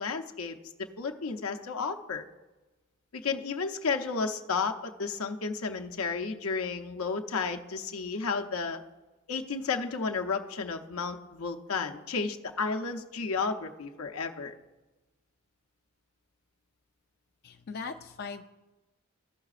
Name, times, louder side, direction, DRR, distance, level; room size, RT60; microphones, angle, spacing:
voice 1, 0.0-2.3 3.1-8.8 9.3-14.5, left 4 dB, 80° left, 5 dB, 0.7 m, -32 dB
voice 2, 17.4-18.4, left 5 dB, 45° left, 4 dB, 0.4 m, -39 dB
15.5 x 5.8 x 2.4 m, 1.1 s
head